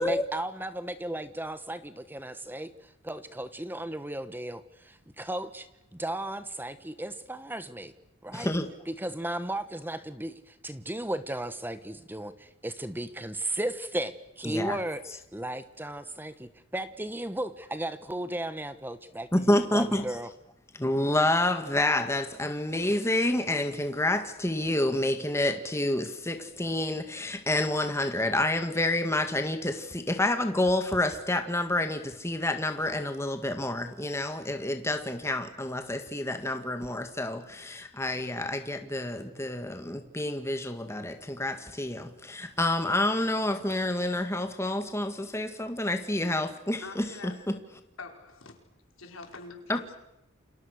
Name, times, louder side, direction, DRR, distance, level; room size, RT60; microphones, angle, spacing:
voice 1, 0.0-7.9 8.2-8.5 8.9-15.0 15.3-20.3, right 1 dB, 10° right, 1.2 m, -35 dB
voice 2, 8.3-8.7 14.4-14.8 19.3-20.1 20.7-47.6 49.7-49.8, left 1 dB, 15° left, 1.8 m, -28 dB
voice 3, 46.8-47.4 48.0-48.6 49.0-49.9, left 4 dB, 80° left, 5.0 m, -44 dB
29.5 x 27.5 x 6.6 m
head